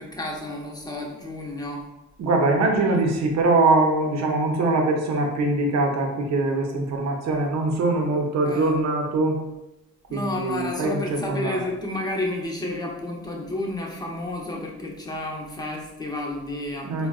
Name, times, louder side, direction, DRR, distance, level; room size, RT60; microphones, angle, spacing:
voice 1, 0.0-1.8 2.9-3.0 8.1-8.2 8.4-8.7 10.1-17.1, left 1 dB, 15° left, -1 dB, 0.6 m, -31 dB
voice 2, 2.2-9.4 10.1-11.7 16.8-17.1, right 2 dB, 60° right, 2 dB, 0.6 m, -22 dB
3.6 x 2.2 x 2.3 m, 0.97 s
cardioid pair, 90°, 30 cm